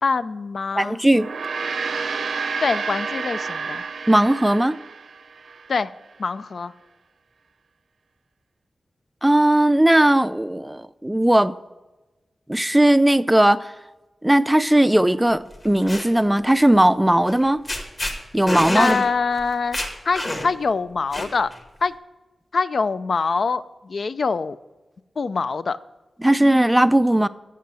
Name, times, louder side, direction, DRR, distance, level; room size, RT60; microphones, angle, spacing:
voice 1, 0.0-1.0 2.6-3.8 5.7-5.9 6.2-6.7 18.7-19.8 20.1-21.5 21.8-22.0 22.5-24.6 25.2-25.8, left 4 dB, 60° left, 0.4 m, -24 dB
voice 2, 0.8-1.3 4.1-4.8 9.2-11.5 12.5-13.7 14.2-17.6 18.3-19.0 26.2-27.3, right 1 dB, 10° right, 0.4 m, -17 dB
Gong, 1.1-5.7, right 5 dB, 85° right, 0.7 m, -30 dB
sound 1, 15.5-16.1 17.3-17.4 17.7-18.1 18.5-19.0 19.4-19.5 19.7-20.6 21.1-21.6, left 1 dB, 35° left, 1.7 m, -27 dB
8.3 x 6.9 x 7.5 m
wide cardioid pair, 90°, 0 cm